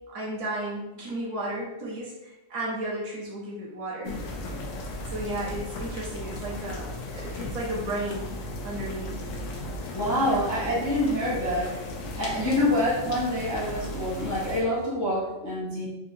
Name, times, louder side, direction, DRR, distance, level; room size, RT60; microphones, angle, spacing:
voice 1, 0.1-4.1 5.1-8.3 8.6-9.1 10.2-10.4, right 1 dB, 65° right, -5 dB, 1.3 m, -34 dB
sound 1, 4.0-14.6, left 1 dB, 80° left, 1.0 m, -36 dB
voice 2, 9.9-11.7 12.2-15.9, left 1 dB, 20° left, -8 dB, 0.5 m, -26 dB
3.7 x 2.4 x 2.7 m, 1.0 s
omnidirectional pair, 1.4 m